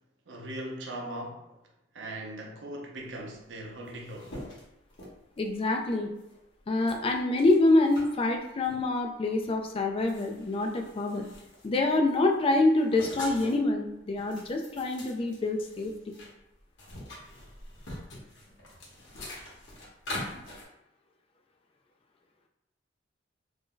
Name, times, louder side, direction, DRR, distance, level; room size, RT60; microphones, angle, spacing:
voice 1, 0.3-1.6 1.9-4.4, right 1 dB, 80° right, 0 dB, 0.6 m, -39 dB
sound 1, 3.4-3.5 3.7-5.6 6.2-6.4 6.9-8.1 8.6-8.8 9.4-9.5 9.9-11.7 12.1-13.7 14.1-16.3 16.6-20.7, left 1 dB, 80° left, 0.9 m, -43 dB
voice 2, 5.4-6.1 6.7-11.2 11.6-16.2, left 2 dB, 30° left, 3 dB, 0.3 m, -26 dB
2.6 x 2.1 x 3.7 m, 0.87 s
head